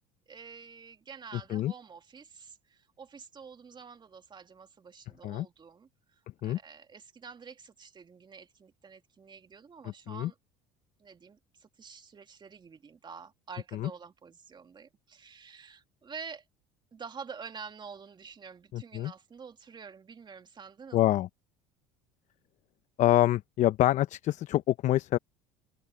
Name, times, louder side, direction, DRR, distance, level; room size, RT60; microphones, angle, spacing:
voice 1, 0.3-10.4 11.0-16.5 16.9-21.0, right 6 dB, 30° right, 2.3 m, -48 dB
voice 2, 18.7-19.1 20.9-21.3 23.0-25.2, left 14 dB, 55° left, 0.9 m, -26 dB
open air
hypercardioid pair, 75°, 15 cm